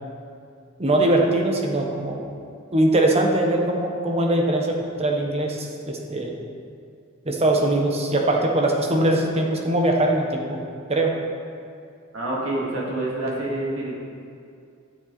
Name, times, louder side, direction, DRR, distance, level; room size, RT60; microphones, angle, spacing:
voice 1, 0.8-2.2 2.7-6.3 7.2-10.6 10.9-11.2, right 1 dB, 30° right, 0 dB, 1.2 m, -21 dB
voice 2, 12.1-14.0, right 1 dB, 80° right, -4 dB, 2.3 m, -27 dB
13.5 x 7.0 x 4.2 m, 2.4 s
head